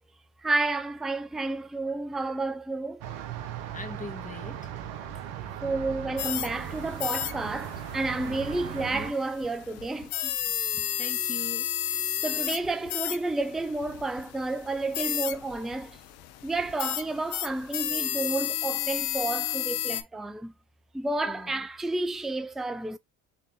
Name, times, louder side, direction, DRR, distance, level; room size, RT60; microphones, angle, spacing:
voice 1, 0.4-3.0 5.6-10.4 12.2-16.0 16.4-20.5 20.9-23.0, right 2 dB, ahead, 0.5 m, -31 dB
sound 1, 3.0-9.1, right 9 dB, 80° right, 1.2 m, -38 dB
voice 2, 3.7-4.6 8.9-9.2 10.7-11.7 21.2-21.5, left 3 dB, 15° left, 1.7 m, -41 dB
sound 2, 6.2-20.0, left 12 dB, 80° left, 0.8 m, -33 dB
4.5 x 3.9 x 2.7 m
hypercardioid pair, 50°, 48 cm